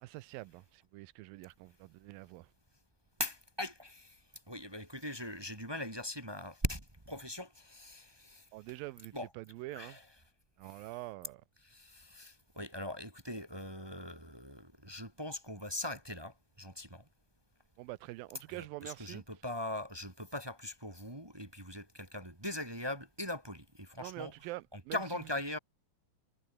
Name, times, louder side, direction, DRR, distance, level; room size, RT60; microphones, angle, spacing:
voice 1, 0.0-2.5 8.5-10.0 10.6-11.4 17.8-19.2 24.0-25.0, right 19 dB, 85° right, 2.4 m, -45 dB
voice 2, 3.2-4.2 4.5-8.4 9.1-9.3 9.7-10.0 10.6-10.9 11.6-17.0 18.5-24.3 24.7-25.6, left 1 dB, 10° right, 1.4 m, -41 dB
omnidirectional pair, 4.1 m